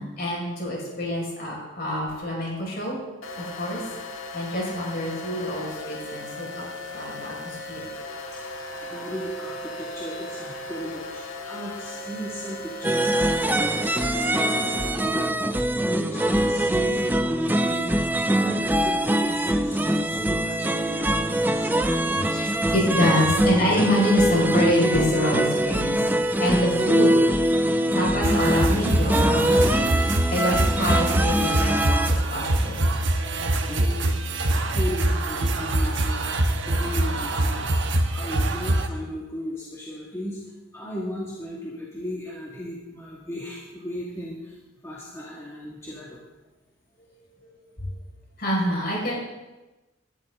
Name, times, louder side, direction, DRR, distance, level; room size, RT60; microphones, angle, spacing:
voice 1, 0.0-3.0 3.4-3.8 4.3-6.6 6.9-7.8 16.2-16.4 21.8-21.9 22.2-26.0 26.4-27.1 27.9-29.9 30.3-32.8 48.4-49.1, equal, 50° left, -3 dB, 5.6 m, -26 dB
sound 1, 3.2-14.9, left 2 dB, 80° left, 1.7 m, -37 dB
voice 2, 8.8-18.0 18.3-21.7 33.1-37.8 38.1-40.4 40.7-44.6 44.8-46.2, equal, 15° left, -5 dB, 2.0 m, -36 dB
sound 2, 12.8-32.1, right 1 dB, 10° right, 0.5 m, -23 dB
sound 3, 28.2-38.9, right 1 dB, 65° right, 1.2 m, -24 dB
19.5 x 11.5 x 3.8 m, 1.1 s
head